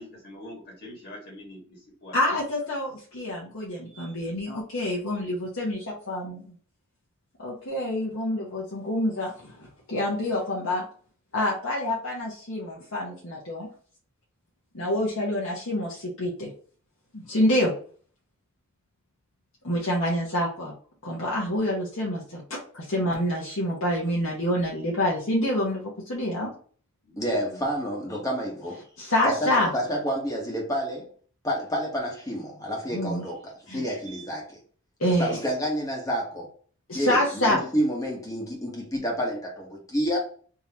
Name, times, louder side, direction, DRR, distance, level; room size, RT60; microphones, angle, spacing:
voice 1, 0.0-2.2 26.4-26.5 27.0-27.6, left 1 dB, 50° left, -3 dB, 1.6 m, -44 dB
voice 2, 2.1-6.5 7.4-10.8 11.3-13.7 14.7-16.5 17.1-17.7 19.6-20.7 21.0-26.5 29.0-29.7 32.9-33.2 33.7-34.2 35.0-35.4 36.9-37.6, left 1 dB, 65° left, -5 dB, 1.1 m, -27 dB
voice 3, 27.2-28.8 29.2-31.1 31.4-34.6 35.2-36.5 36.9-40.2, equal, 15° left, -1 dB, 1.2 m, -29 dB
3.7 x 2.9 x 2.9 m, 0.44 s
head